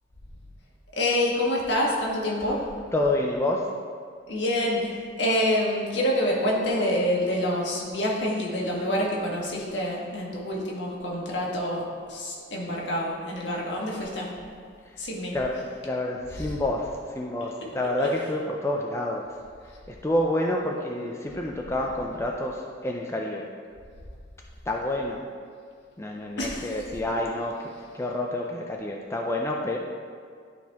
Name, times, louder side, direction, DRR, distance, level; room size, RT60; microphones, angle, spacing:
voice 1, 1.0-2.6 4.3-14.3 15.0-15.3 16.4-16.5 18.0-18.1 26.4-26.7, left 1 dB, 65° left, -3 dB, 1.6 m, -27 dB
voice 2, 2.9-3.7 15.3-19.3 19.9-23.5 24.7-25.2 26.0-27.6 27.9-29.8, left 1 dB, 15° left, -1 dB, 0.4 m, -28 dB
11.5 x 4.4 x 3.5 m, 2.1 s
head